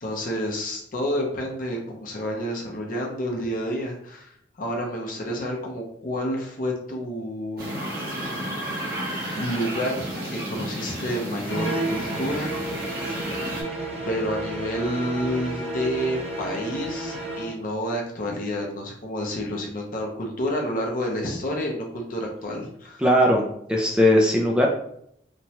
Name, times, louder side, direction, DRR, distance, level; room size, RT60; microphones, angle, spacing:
voice 1, 0.0-4.3 4.6-7.7 9.4-13.0 14.0-23.0, equal, 50° left, 0 dB, 0.6 m, -29 dB
sound 1, 7.6-13.6, right 1 dB, 55° right, 0.9 m, -32 dB
sound 2, 11.4-17.6, right 1 dB, 35° right, 0.6 m, -32 dB
voice 2, 23.0-24.7, equal, 5° right, -1 dB, 0.3 m, -19 dB
3.0 x 2.2 x 2.7 m, 0.72 s
head